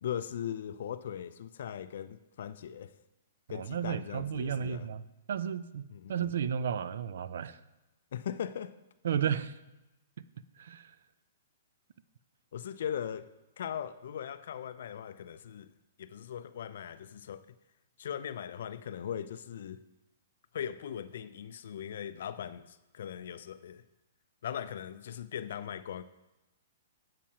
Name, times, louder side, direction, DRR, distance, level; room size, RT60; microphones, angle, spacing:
voice 1, 0.0-2.9 3.5-4.9 5.9-6.3 8.1-8.7 12.5-15.7 16.0-17.6 18.0-19.8 20.5-23.8 24.4-26.0, left 9 dB, 65° left, 0.4 m, -39 dB
voice 2, 3.5-5.0 5.3-7.6 9.0-9.6 10.2-10.3 10.6-10.9, right 8 dB, 70° right, 0.3 m, -33 dB
8.6 x 7.4 x 2.8 m
hypercardioid pair, 155°, 0 cm